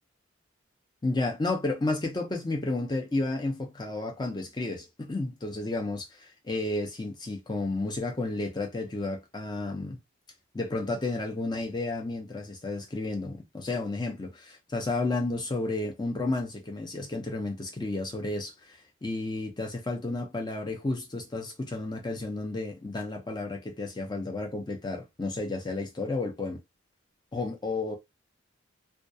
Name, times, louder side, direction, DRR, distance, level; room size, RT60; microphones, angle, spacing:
voice 1, 1.0-10.0 10.5-26.6 27.3-28.0, left 2 dB, 20° left, 0.5 m, -32 dB
2.3 x 2.2 x 2.6 m
head